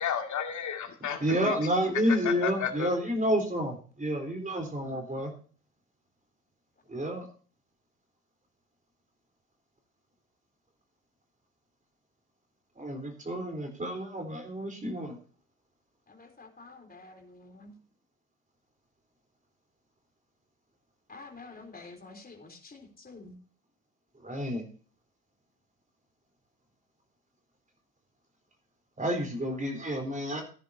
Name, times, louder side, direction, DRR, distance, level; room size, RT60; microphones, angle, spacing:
voice 1, 0.0-1.5 2.2-2.9, left 8 dB, 45° left, 2.3 m, -32 dB
voice 2, 1.2-5.3 6.9-7.3 12.8-15.2 24.2-24.7 29.0-30.4, equal, 20° right, 3.8 m, -30 dB
voice 3, 16.1-17.7 21.1-23.4, left 3 dB, 20° left, 3.6 m, -49 dB
16.0 x 10.0 x 2.7 m
hypercardioid pair, 60°, 40 cm